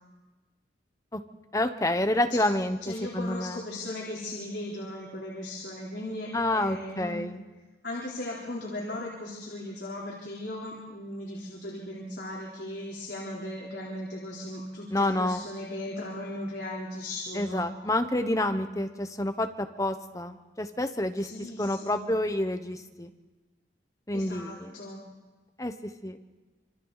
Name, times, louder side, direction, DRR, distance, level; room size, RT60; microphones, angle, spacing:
voice 1, 1.5-3.6 6.3-7.4 14.9-15.4 17.3-21.3 21.6-23.1 24.1-24.7 25.6-25.7 26.0-26.2, left 1 dB, 20° left, 8 dB, 1.1 m, -28 dB
voice 2, 2.8-7.2 7.8-17.7 21.2-22.1 24.1-25.0, left 1 dB, 80° left, -4 dB, 3.8 m, -37 dB
27.0 x 25.0 x 4.1 m, 1.2 s
head